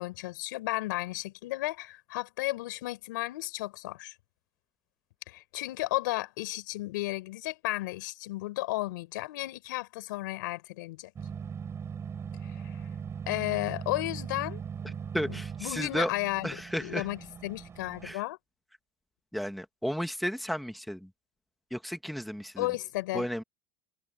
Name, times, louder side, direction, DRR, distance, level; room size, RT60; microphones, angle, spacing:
voice 1, 0.0-4.1 5.3-11.1 12.4-12.8 13.3-15.0 15.3-16.5 16.8-18.4 22.6-23.3, left 19 dB, 80° left, 5.1 m, -34 dB
sound 1, 11.2-18.1, right 6 dB, 25° right, 7.8 m, -40 dB
voice 2, 14.8-16.1 16.4-17.1 18.0-18.2 19.3-21.1 21.7-22.7 23.1-23.4, equal, ahead, 1.9 m, -33 dB
supercardioid pair, 120°, 10 cm